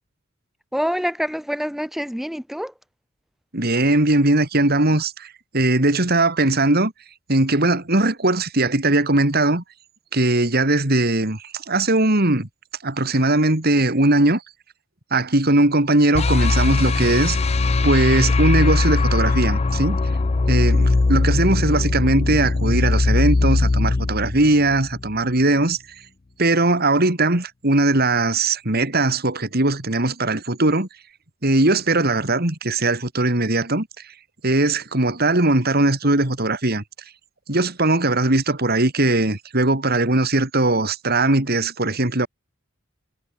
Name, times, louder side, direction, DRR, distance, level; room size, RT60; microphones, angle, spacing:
voice 1, 0.7-2.7, equal, ahead, 5.8 m, -26 dB
voice 2, 3.5-6.9 7.3-9.6 10.1-12.5 12.8-14.4 15.1-17.4 17.8-20.0 20.5-25.8 26.4-30.9 31.4-33.9 34.4-36.8 37.5-42.3, right 2 dB, 50° right, 3.1 m, -19 dB
sound 1, 16.1-25.2, left 3 dB, 30° left, 0.5 m, -20 dB
head